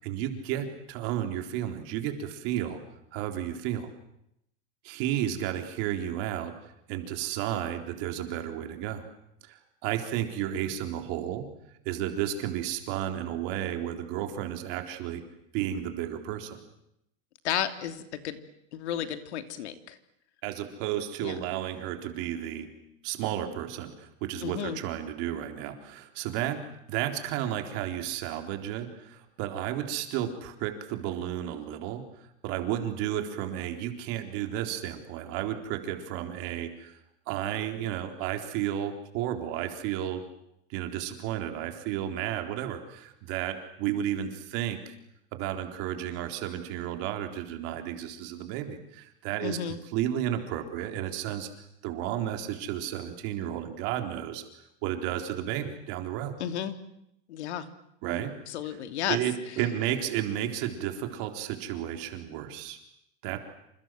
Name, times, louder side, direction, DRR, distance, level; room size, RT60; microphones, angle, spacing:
voice 1, 0.0-2.8 3.1-3.9 4.8-6.5 6.9-9.0 9.5-11.5 11.9-15.2 15.5-16.6 20.4-22.7 23.0-26.6 26.9-32.0 32.4-37.0 37.3-40.2 40.7-44.9 45.3-51.5 51.8-54.4 54.8-56.3 58.0-58.3 59.1-62.8 63.2-63.4, right 11 dB, 45° right, 5 dB, 4.0 m, -32 dB
voice 2, 17.4-18.4 18.7-20.0 21.2-21.4 24.4-24.8 49.4-49.8 56.4-56.8 57.3-57.7 58.5-59.2, left 10 dB, 75° left, 9 dB, 3.1 m, -32 dB
28.0 x 27.5 x 7.7 m, 0.79 s
supercardioid pair, 165°, 33 cm